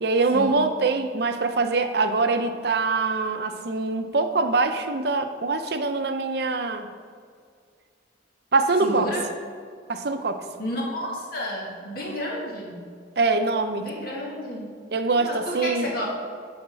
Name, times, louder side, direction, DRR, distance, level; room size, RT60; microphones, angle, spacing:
voice 1, 0.0-6.9 8.5-9.1 9.9-10.4 13.2-13.9 14.9-15.9, right 3 dB, 60° right, 7 dB, 0.6 m, -24 dB
voice 2, 8.8-9.2 10.6-12.8 13.8-14.7 15.1-16.0, equal, 50° left, -2 dB, 2.1 m, -31 dB
11.0 x 4.3 x 6.2 m, 2.1 s
head